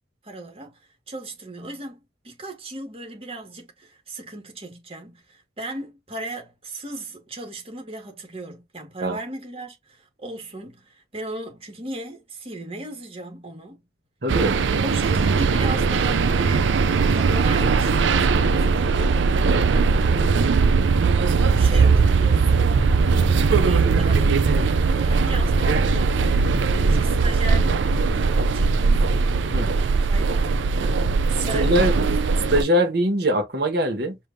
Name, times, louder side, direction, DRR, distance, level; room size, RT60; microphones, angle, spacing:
voice 1, 0.2-2.0 2.2-13.8 14.8-16.7 17.1-19.3 19.7-20.7 21.6-22.7 23.5-26.5 26.9-29.3 29.6-31.1 31.4-31.9, right 2 dB, 30° right, 1.8 m, -37 dB
voice 2, 14.2-14.6 29.5-29.7 31.4-31.9 32.5-34.2, right 1 dB, 60° right, 1.5 m, -22 dB
sound 1, 14.3-32.6, right 4 dB, 85° right, 0.5 m, -19 dB
5.1 x 2.8 x 2.7 m
head